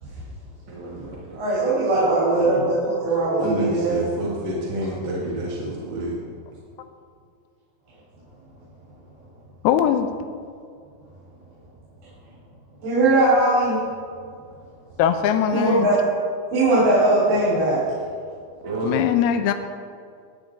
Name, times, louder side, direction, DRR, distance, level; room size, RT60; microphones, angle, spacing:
voice 1, 0.7-1.4 3.4-6.2 18.6-19.1, right 1 dB, 40° right, -5 dB, 1.8 m, -28 dB
voice 2, 1.4-4.0 12.8-13.8 15.5-16.0 16.5-17.8, right 2 dB, 75° right, -9 dB, 5.6 m, -20 dB
voice 3, 9.6-10.1 15.0-15.9 18.8-19.5, left 9 dB, 85° left, 8 dB, 2.6 m, -20 dB
18.5 x 10.0 x 4.0 m, 2.2 s
omnidirectional pair, 4.5 m